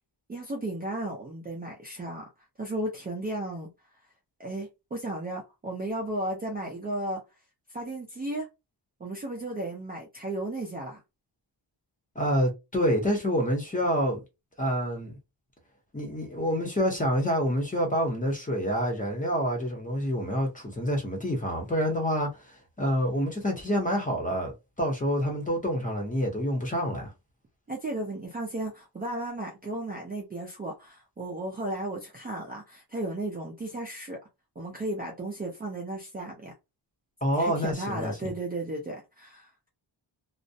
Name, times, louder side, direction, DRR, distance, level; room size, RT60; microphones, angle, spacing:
voice 1, 0.3-2.2 2.6-3.7 4.4-7.2 7.7-8.5 9.0-11.0 27.7-34.2 34.6-36.5 37.3-39.7, right 1 dB, 20° right, 0.4 m, -34 dB
voice 2, 12.2-14.2 14.6-15.2 15.9-27.1 37.2-38.3, equal, 20° left, 0.7 m, -27 dB
2.3 x 2.0 x 2.6 m
wide cardioid pair, 180°, 45 cm